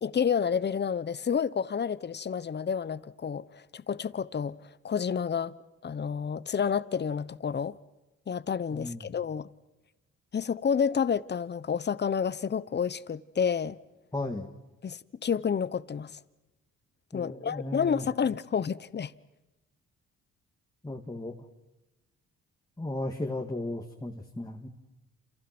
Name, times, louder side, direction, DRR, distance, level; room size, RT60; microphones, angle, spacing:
voice 1, 0.0-5.5 5.8-7.8 8.3-9.5 10.3-13.8 14.8-16.2 17.1-19.1, left 7 dB, 35° left, 1.0 m, -30 dB
voice 2, 8.7-9.1 14.1-14.5 17.1-18.1 20.8-21.3 22.8-24.7, left 2 dB, 10° left, 2.3 m, -35 dB
29.0 x 28.0 x 6.2 m
cardioid pair, 90°, 30 cm